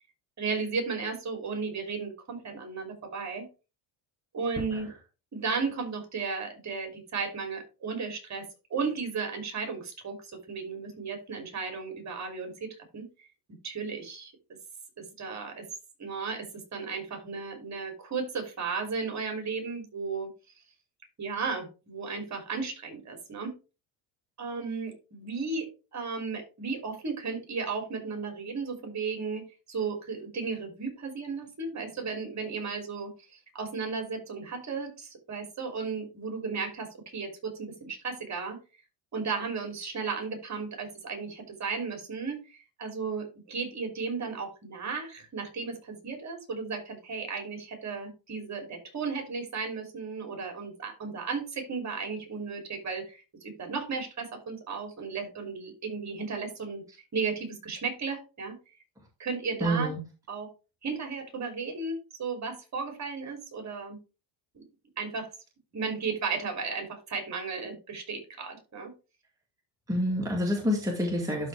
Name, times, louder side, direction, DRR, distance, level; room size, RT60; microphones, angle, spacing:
voice 1, 0.4-3.5 4.3-4.9 5.3-8.4 8.7-13.1 13.6-14.3 15.0-15.6 16.0-16.5 16.7-20.3 21.2-23.5 24.4-33.1 33.5-38.6 39.1-56.8 57.1-58.6 59.2-59.9 60.3-60.5 60.8-64.0 64.5-64.6 65.0-65.3 65.7-68.9, right 5 dB, 35° right, 3 dB, 3.2 m, -34 dB
voice 2, 59.6-60.0 69.9-71.5, equal, 5° right, -1 dB, 2.1 m, -27 dB
12.0 x 4.1 x 3.4 m, 0.31 s
cardioid pair, 110°, 49 cm